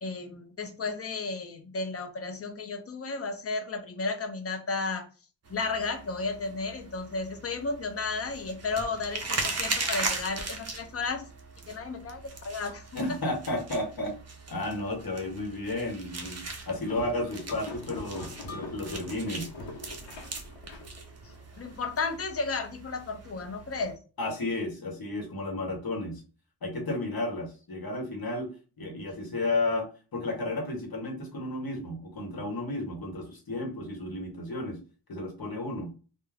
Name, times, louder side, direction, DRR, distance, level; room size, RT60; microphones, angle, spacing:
voice 1, 0.0-5.1 5.5-11.2 11.7-12.8 21.2-24.0, left 4 dB, 35° left, 6 dB, 0.5 m, -33 dB
sound 1, 5.5-23.9, right 3 dB, 35° right, 0.5 m, -39 dB
voice 2, 12.9-14.1 14.5-19.5 24.2-26.2 26.6-28.5 28.8-29.9 30.1-34.8 35.1-35.9, left 2 dB, 55° left, 2 dB, 0.9 m, -32 dB
sound 2, 16.9-21.7, left 2 dB, 85° left, 0.8 m, -43 dB
2.3 x 2.1 x 3.2 m, 0.35 s
wide cardioid pair, 110°, 44 cm